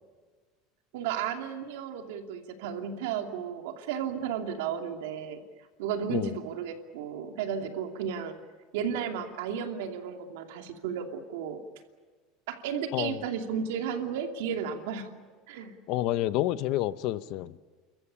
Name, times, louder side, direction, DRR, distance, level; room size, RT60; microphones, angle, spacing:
voice 1, 0.9-5.4 5.8-8.4 8.7-11.6 12.5-15.1 15.5-15.8, right 7 dB, 75° right, 4 dB, 2.6 m, -33 dB
voice 2, 12.9-13.2 15.9-17.6, left 14 dB, 45° left, 15 dB, 0.7 m, -29 dB
29.5 x 14.5 x 10.0 m, 1.5 s
cardioid pair, 180°, 0 cm